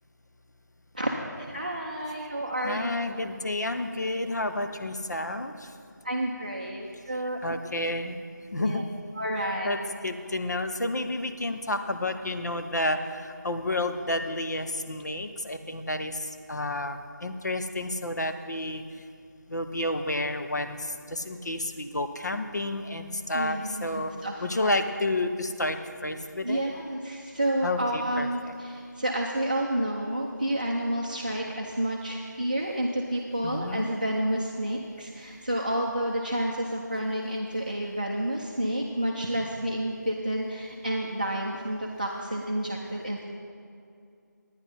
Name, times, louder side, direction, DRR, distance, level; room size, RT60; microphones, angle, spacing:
voice 1, 1.5-2.9 6.0-7.5 8.6-8.8 9.2-9.8 23.3-24.8 26.4-43.2, right 1 dB, 25° right, -2 dB, 0.5 m, -30 dB
voice 2, 2.6-5.5 7.4-8.2 8.5-8.8 9.6-9.8 10.0-13.0 13.2-16.2 16.5-18.8 19.5-20.8 21.1-24.1 24.4-25.8 26.0-26.7 27.6-28.5 33.4-33.9, left 1 dB, 60° left, 7 dB, 0.8 m, -30 dB
9.8 x 9.8 x 5.2 m, 2.4 s
figure-of-eight pair, 175°, 10 cm